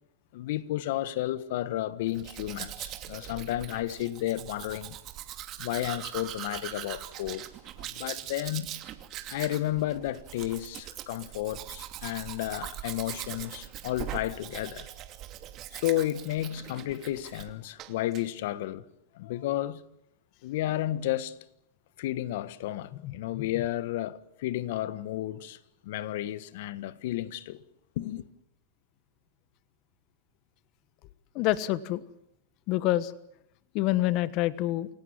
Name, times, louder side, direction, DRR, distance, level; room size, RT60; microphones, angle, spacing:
voice 1, 0.3-4.9 5.6-7.5 7.8-8.7 9.3-14.9 15.7-18.9 19.1-19.8 20.4-21.4 22.0-27.6 27.9-28.2, left 14 dB, 65° left, 1.5 m, -32 dB
Domestic sounds home sounds, 2.1-17.5 17.8-18.2, right 13 dB, 40° right, 2.6 m, -41 dB
voice 2, 23.0-23.4 31.3-32.0 32.7-33.1 33.7-34.9, left 16 dB, 50° left, 1.3 m, -27 dB
28.5 x 18.0 x 7.6 m
hypercardioid pair, 110°, 0 cm